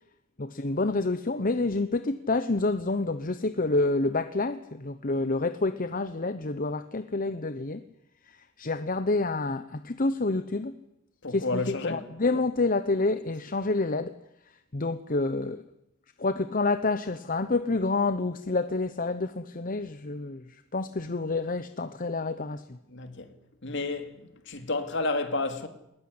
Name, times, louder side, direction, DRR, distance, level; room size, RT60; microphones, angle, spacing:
voice 1, 0.4-7.8 8.3-10.7 11.3-14.2 14.7-15.6 16.2-22.8, left 3 dB, 45° left, 1.0 m, -28 dB
voice 2, 11.2-12.0 22.9-23.3 23.6-24.1 24.5-25.7, left 3 dB, 60° left, 2.8 m, -30 dB
21.5 x 21.0 x 9.8 m
head